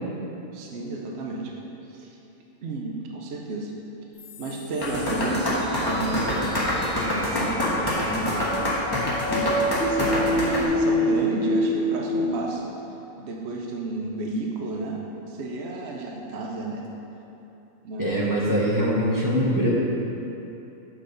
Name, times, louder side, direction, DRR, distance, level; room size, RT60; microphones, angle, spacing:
voice 1, 0.5-1.5 1.9-2.1 2.6-3.7 4.4-8.5 9.3-12.7 13.2-16.8 17.8-18.4, right 2 dB, 60° right, 0 dB, 0.9 m, -32 dB
sound 1, 4.2-12.3, equal, 45° left, 1.4 m, -28 dB
sound 2, 4.8-10.6, left 1 dB, 20° left, 1.1 m, -26 dB
voice 2, 18.0-19.7, equal, 15° right, -7 dB, 1.2 m, -23 dB
7.0 x 6.1 x 3.9 m, 3.0 s
omnidirectional pair, 1.4 m